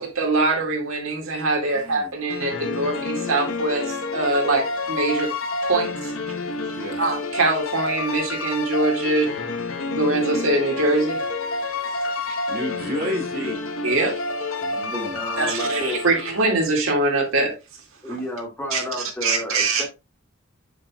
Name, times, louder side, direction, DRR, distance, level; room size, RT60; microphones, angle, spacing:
voice 1, 0.0-5.3 5.6-6.1 7.0-9.3 9.9-11.2 11.9-12.0 13.8-14.2 15.4-17.6 18.1-18.2 18.7-18.8 19.2-19.8, right 2 dB, 90° right, 2.3 m, -23 dB
voice 2, 1.7-2.1 6.7-7.0 12.1-13.6 14.6-15.2, equal, 45° right, 2.5 m, -32 dB
sound 1, 2.3-16.6, left 3 dB, 85° left, 1.0 m, -29 dB
voice 3, 14.8-16.0 18.0-19.9, left 1 dB, 10° left, 2.2 m, -31 dB
7.5 x 6.0 x 2.3 m
head